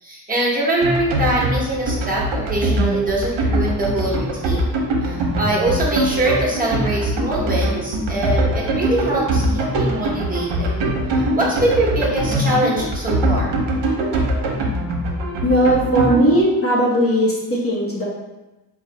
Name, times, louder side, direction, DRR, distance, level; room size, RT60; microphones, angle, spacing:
voice 1, 0.0-4.7 5.0-10.7 11.1-13.6, right 1 dB, 20° right, -5 dB, 1.3 m, -23 dB
sound 1, 0.8-16.4, right 1 dB, 80° right, 0.9 m, -21 dB
voice 2, 15.4-18.0, equal, 30° left, -4 dB, 1.0 m, -18 dB
4.0 x 2.5 x 4.1 m, 1.0 s
cardioid pair, 100°, 42 cm